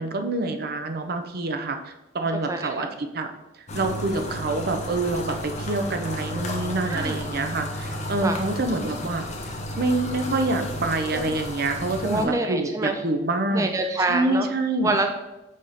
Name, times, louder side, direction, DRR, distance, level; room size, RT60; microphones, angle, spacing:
voice 1, 0.0-3.3 3.7-9.2 9.8-13.7 14.1-14.9, right 2 dB, 60° right, 6 dB, 0.7 m, -26 dB
voice 2, 2.5-2.9 6.9-7.2 8.2-8.4 12.0-13.0 13.5-14.5 14.8-15.1, right 2 dB, 15° right, 5 dB, 0.4 m, -26 dB
sound 1, 3.7-12.3, equal, 40° left, 1.1 m, -32 dB
6.5 x 3.6 x 5.7 m, 0.95 s
head